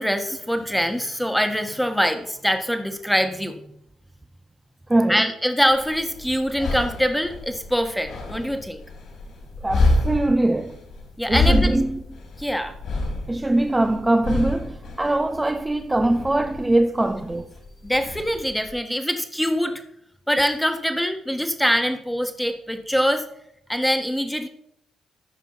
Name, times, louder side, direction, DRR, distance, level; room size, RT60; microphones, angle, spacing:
voice 1, 0.0-3.6 5.1-8.8 11.2-11.7 12.4-12.7 17.8-19.8 20.3-23.2 23.7-24.5, equal, ahead, 1.4 m, -23 dB
voice 2, 4.9-5.3 9.6-10.8 11.3-12.0 13.3-17.5, right 1 dB, 15° right, 0.6 m, -22 dB
sound 1, 5.7-18.8, left 2 dB, 65° left, 3.8 m, -28 dB
14.0 x 5.4 x 5.7 m
cardioid pair, 90°, 0 cm